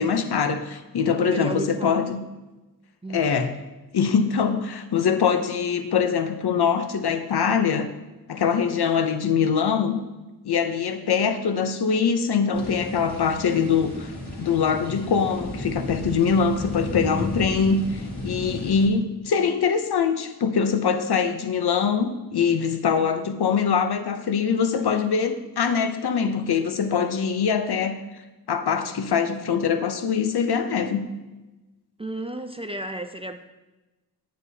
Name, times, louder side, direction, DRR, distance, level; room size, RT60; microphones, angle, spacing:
voice 1, 0.0-2.2 3.1-3.5 3.9-7.9 8.3-10.0 10.4-14.1 14.4-28.0 28.5-31.1, left 6 dB, 75° left, 8 dB, 0.7 m, -23 dB
voice 2, 1.2-2.1 3.0-3.2 32.0-33.4, right 1 dB, 15° right, 6 dB, 0.4 m, -33 dB
sound 1, 12.5-18.9, left 1 dB, 45° left, 1.6 m, -33 dB
9.5 x 8.1 x 2.8 m, 1.1 s
wide cardioid pair, 105°, 40 cm